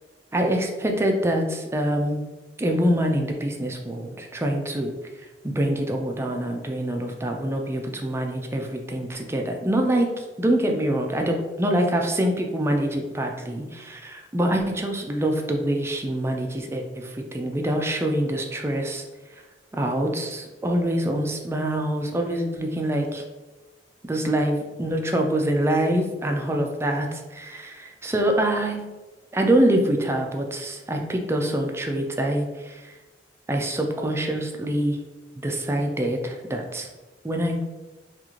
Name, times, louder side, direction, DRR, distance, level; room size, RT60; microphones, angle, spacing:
voice 1, 0.3-2.2 2.6-4.9 5.4-19.0 19.7-23.2 24.0-28.8 29.3-32.9 33.5-35.0 35.3-36.9 37.2-37.6, right 1 dB, 15° right, 2 dB, 0.4 m, -25 dB
3.7 x 2.4 x 3.0 m, 1.2 s
head